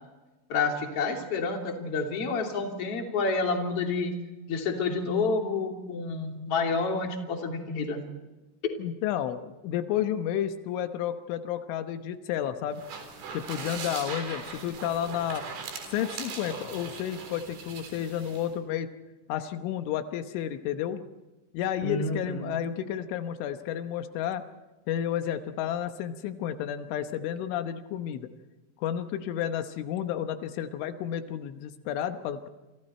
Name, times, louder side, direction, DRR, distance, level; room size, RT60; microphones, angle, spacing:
voice 1, 0.5-4.1 4.5-8.0 8.6-8.7 21.8-22.6, left 4 dB, 35° left, 2 dB, 3.3 m, -29 dB
voice 2, 8.8-12.8 13.3-15.5 15.9-18.9 19.3-21.0 21.5-24.4 24.9-28.3 28.8-32.5, left 10 dB, 85° left, 8 dB, 3.5 m, -31 dB
sound 1, 12.7-18.5, right 5 dB, 75° right, 6.2 m, -40 dB
28.0 x 28.0 x 4.4 m, 1.1 s
omnidirectional pair, 5.4 m